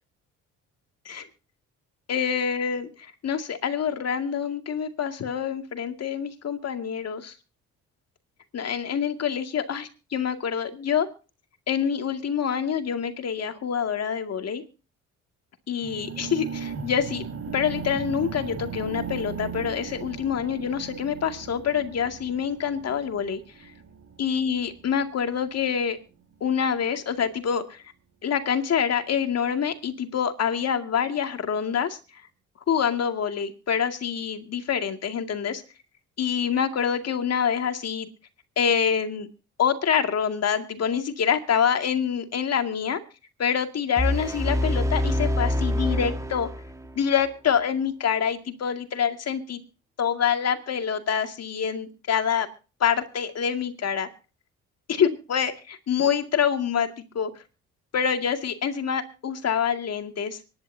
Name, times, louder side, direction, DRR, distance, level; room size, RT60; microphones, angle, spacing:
voice 1, 2.1-7.4 8.5-11.1 11.7-14.6 15.7-17.2 17.5-23.7 24.2-26.0 26.4-27.8 28.2-32.2 32.7-35.6 36.2-38.1 38.6-39.3 39.6-43.0 43.4-46.5 47.0-49.6 50.0-52.5 52.8-54.1 54.9-57.3 57.9-60.4, left 7 dB, 55° left, 7 dB, 2.2 m, -26 dB
sound 1, 15.8-25.8, right 6 dB, 50° right, 2.1 m, -37 dB
sound 2, 44.0-47.0, left 1 dB, 10° right, 1.4 m, -26 dB
24.5 x 11.0 x 2.7 m, 0.33 s
cardioid pair, 90°, 30 cm